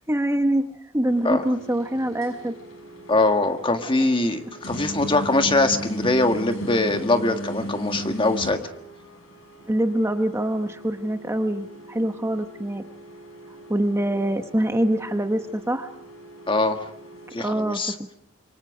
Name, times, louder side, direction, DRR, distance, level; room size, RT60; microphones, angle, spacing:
voice 1, 0.1-0.6 0.9-2.5 9.7-12.8 13.7-15.9 17.4-17.8, right 1 dB, 15° right, 7 dB, 1.0 m, -24 dB
sound 1, 1.1-17.4, right 1 dB, 70° left, 6.6 m, -38 dB
voice 2, 3.1-8.6 16.5-16.8 17.3-17.9, left 2 dB, 25° left, 7 dB, 1.7 m, -22 dB
27.0 x 24.5 x 5.0 m, 0.69 s
head